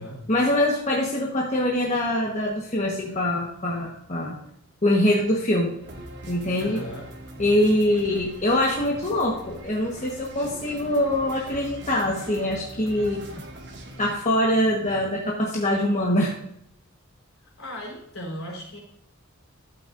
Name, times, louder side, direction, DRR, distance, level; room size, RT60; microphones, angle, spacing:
voice 1, 0.3-4.3 4.8-5.8 6.3-6.8 7.4-13.2 14.0-16.3, left 1 dB, 35° left, -2 dB, 1.3 m, -23 dB
sound 1, 5.8-14.1, right 1 dB, 50° right, 1.7 m, -42 dB
voice 2, 6.6-7.2 17.6-18.8, equal, 65° left, -1 dB, 4.2 m, -37 dB
13.0 x 8.2 x 2.6 m, 0.76 s
head